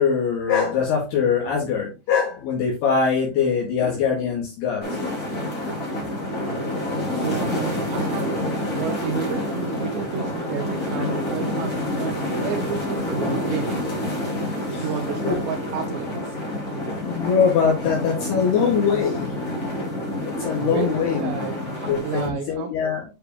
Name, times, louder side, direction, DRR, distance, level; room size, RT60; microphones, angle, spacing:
voice 1, 0.0-4.8 14.7-14.9 15.2-15.4 17.0-19.3 20.3-21.3 21.9-23.0, left 6 dB, 65° left, 3.4 m, -22 dB
sound 1, 4.8-22.3, left 1 dB, 30° left, 1.6 m, -28 dB
voice 2, 7.1-8.4 8.8-13.9 14.8-16.4 20.5-22.8, right 7 dB, 80° right, 3.0 m, -31 dB
9.2 x 4.8 x 2.9 m
omnidirectional pair, 5.3 m